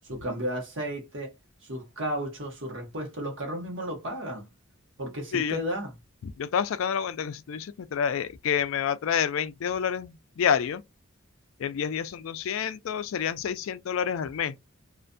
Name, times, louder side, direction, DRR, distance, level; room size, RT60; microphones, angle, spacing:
voice 1, 0.0-1.3 1.6-4.5 5.0-5.9, equal, 60° right, 1.0 m, -33 dB
voice 2, 6.2-10.8 11.6-14.5, left 8 dB, 70° left, 0.3 m, -28 dB
2.4 x 2.2 x 2.5 m
head